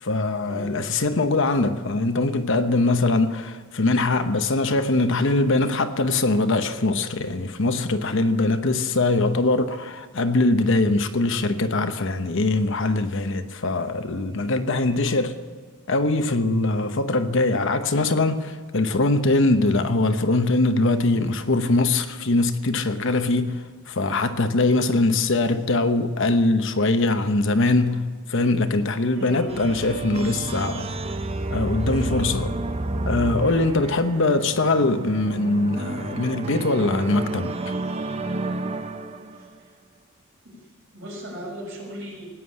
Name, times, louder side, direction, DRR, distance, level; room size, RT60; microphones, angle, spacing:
voice 1, 0.0-15.4 15.9-30.9 31.5-32.5 33.1-37.7, left 2 dB, 65° left, 1.0 m, -22 dB
voice 2, 29.1-29.6 34.1-34.4 39.3-39.7 40.4-40.6 40.9-42.3, equal, 65° right, 6.0 m, -37 dB
sound 1, 29.5-39.5, right 2 dB, 30° right, 0.8 m, -30 dB
17.0 x 9.7 x 8.6 m
head